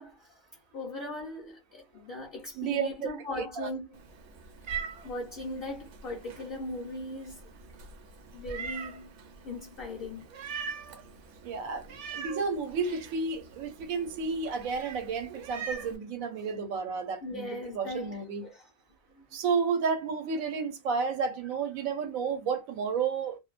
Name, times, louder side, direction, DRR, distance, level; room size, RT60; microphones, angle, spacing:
voice 1, 0.0-4.0 5.0-7.5 8.3-9.2 9.4-10.3 17.2-18.7 19.1-19.2, left 1 dB, 60° left, 0.6 m, -39 dB
voice 2, 2.6-3.1 3.6-3.7 11.4-18.4 19.3-23.4, right 5 dB, 90° right, 1.0 m, -31 dB
Meow, 3.9-16.0, right 5 dB, 65° right, 0.9 m, -43 dB
2.5 x 2.1 x 2.3 m
omnidirectional pair, 1.4 m